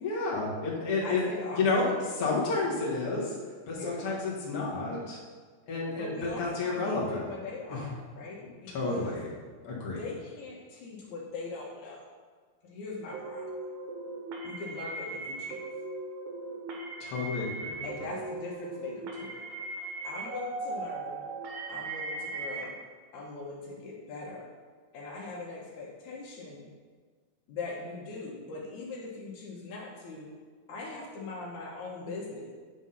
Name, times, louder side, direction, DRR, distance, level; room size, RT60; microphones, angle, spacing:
voice 1, 0.0-1.2 1.6-1.9 2.2-3.3 3.7-5.2 5.7-6.1 6.4-7.2 7.7-7.8 8.7-9.3 9.6-10.0 17.0-17.8, left 3 dB, 55° left, -5 dB, 2.4 m, -30 dB
voice 2, 1.0-2.0 3.7-4.2 5.9-9.1 9.9-12.0 12.6-13.5 14.4-15.6 17.8-19.4 20.0-21.2 21.7-22.8 23.1-24.5 24.9-26.7 27.5-30.3 30.7-32.5, left 3 dB, 80° left, -3 dB, 2.4 m, -41 dB
sound 1, 13.1-22.6, right 2 dB, 90° right, 2.4 m, -38 dB
9.0 x 3.7 x 5.6 m, 1.5 s
omnidirectional pair, 3.3 m